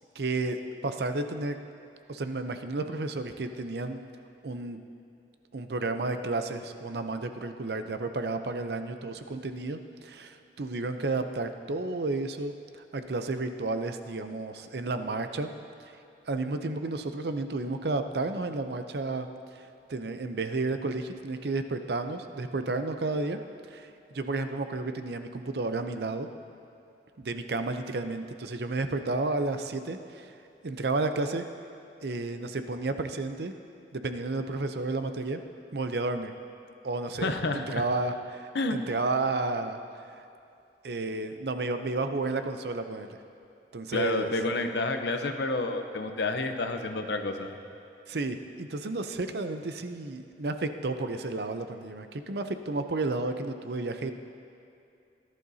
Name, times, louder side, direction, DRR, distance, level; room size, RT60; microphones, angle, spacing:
voice 1, 0.2-1.5 2.1-4.0 4.4-4.8 5.5-15.5 16.3-19.3 19.5-19.6 19.9-23.4 23.7-26.3 27.2-30.3 30.6-31.4 32.0-33.5 33.9-35.4 35.7-36.3 36.8-39.8 40.8-43.2 43.7-44.3 48.1-54.1, right 3 dB, 65° right, 8 dB, 0.6 m, -32 dB
voice 2, 37.2-37.8 38.5-38.8 43.9-47.5, left 2 dB, 75° left, 6 dB, 0.8 m, -29 dB
17.5 x 11.5 x 2.8 m, 2.6 s
head